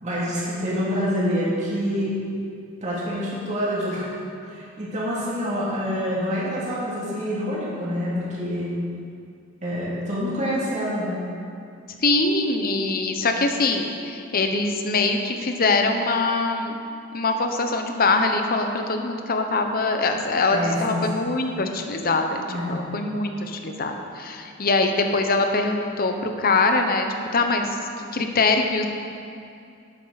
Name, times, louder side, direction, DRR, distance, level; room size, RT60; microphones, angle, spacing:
voice 1, 0.0-2.2 2.8-4.1 4.4-8.7 9.6-11.3 20.5-21.0 22.5-22.8, equal, 35° right, -8 dB, 2.6 m, -26 dB
voice 2, 12.0-16.8 17.1-27.1 27.3-27.7 28.0-28.9, left 3 dB, 45° left, 5 dB, 0.9 m, -23 dB
12.0 x 8.8 x 4.1 m, 2.5 s
head